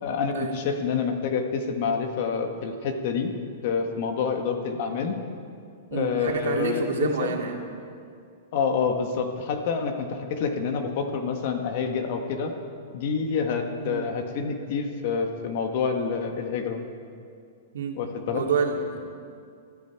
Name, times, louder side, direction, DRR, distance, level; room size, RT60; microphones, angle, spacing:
voice 1, 0.0-3.3 3.6-5.2 5.9-7.4 8.5-12.5 12.9-16.8 17.9-18.4, left 5 dB, 40° left, 5 dB, 1.5 m, -27 dB
voice 2, 5.9-7.6 13.8-14.1 17.7-18.0 18.3-19.0, right 5 dB, 80° right, 1 dB, 2.4 m, -28 dB
21.5 x 13.5 x 4.6 m, 2.4 s
supercardioid pair, 170°, 0 cm